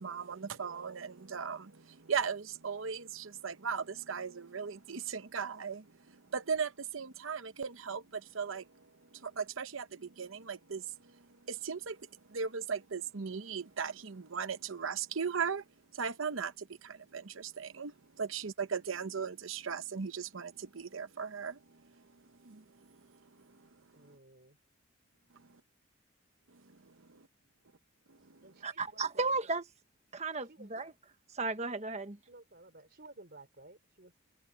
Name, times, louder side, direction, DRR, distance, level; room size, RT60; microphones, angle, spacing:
voice 1, 0.0-15.6 15.9-24.2 26.5-27.3 28.1-28.4, right 6 dB, 80° right, 0.9 m, -38 dB
voice 2, 23.9-24.6 28.4-29.3 30.5-30.9 32.3-34.1, right 2 dB, 50° right, 4.1 m, -55 dB
voice 3, 28.6-29.6 30.1-30.9 31.3-32.2, right 3 dB, 35° right, 1.3 m, -34 dB
head